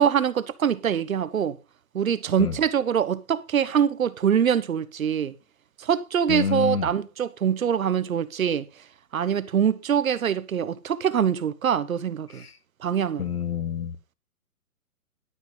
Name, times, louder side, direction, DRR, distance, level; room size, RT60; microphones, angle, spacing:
voice 1, 0.0-1.6 1.9-5.3 5.8-8.7 9.1-12.4 12.8-13.3, right 8 dB, 65° right, 1.1 m, -24 dB
voice 2, 6.3-6.9 12.3-12.5 13.2-14.1, left 6 dB, 85° left, 2.7 m, -28 dB
12.0 x 5.6 x 5.4 m
hypercardioid pair, 175°, 44 cm